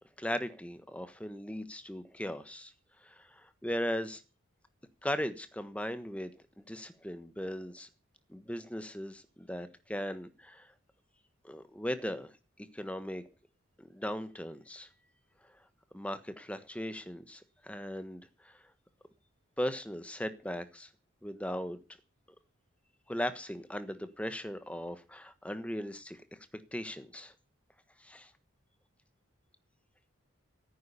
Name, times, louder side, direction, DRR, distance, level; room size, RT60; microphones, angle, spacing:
voice 1, 0.2-2.7 3.0-4.2 5.0-6.3 6.7-7.9 8.3-10.7 11.4-12.3 12.7-13.2 13.8-14.9 15.9-18.6 19.6-20.9 21.2-21.8 23.1-26.2 26.7-27.3 28.0-28.3, equal, 5° left, 1.2 m, -38 dB
14.5 x 9.5 x 7.0 m
head